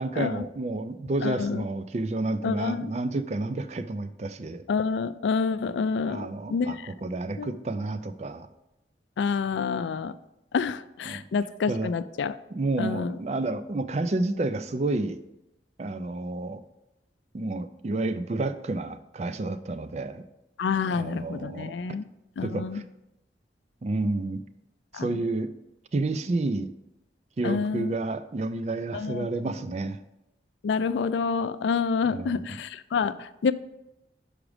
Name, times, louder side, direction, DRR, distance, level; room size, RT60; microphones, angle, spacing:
voice 1, 0.0-4.7 6.1-6.8 7.0-8.5 11.1-11.2 11.7-11.9 12.5-15.2 15.8-16.6 17.3-20.2 20.8-21.7 22.4-22.8 23.8-24.4 24.9-25.5 25.9-26.7 27.4-30.0 32.1-32.5, right 2 dB, 35° right, 12 dB, 0.4 m, -30 dB
voice 2, 1.2-1.6 2.4-2.9 4.7-6.9 7.4-7.6 9.2-10.2 10.5-12.4 12.8-13.2 20.6-22.1 22.4-22.8 24.9-25.2 27.4-28.0 28.9-29.3 30.6-33.5, left 5 dB, 90° left, 13 dB, 0.4 m, -28 dB
6.1 x 5.0 x 4.9 m, 0.89 s
head